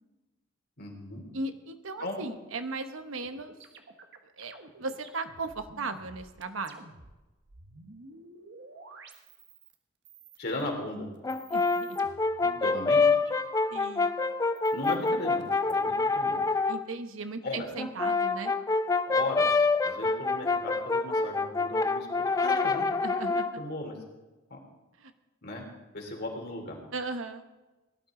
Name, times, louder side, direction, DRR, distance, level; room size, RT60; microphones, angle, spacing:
voice 1, 0.8-1.2 2.0-2.2 10.4-11.1 12.5-13.0 14.7-16.4 17.4-17.7 19.1-22.9 23.6-24.0 24.5-24.6 25.4-25.6 25.9-26.8, left 2 dB, 55° left, 1 dB, 3.0 m, -36 dB
voice 2, 1.3-3.6 4.2-6.8 11.5-12.0 13.7-14.2 16.7-18.5 23.0-23.6 25.0-25.1 26.9-27.5, right 3 dB, 80° right, 9 dB, 1.0 m, -37 dB
sound 1, 3.2-7.2 7.4-9.7 10.0-10.7 11.1-13.9 14.5-15.7, right 4 dB, 60° right, 1.2 m, -50 dB
Brass instrument, 11.2-16.8 17.8-23.6, left 4 dB, 15° left, 0.4 m, -27 dB
18.0 x 12.0 x 3.8 m, 1.1 s
head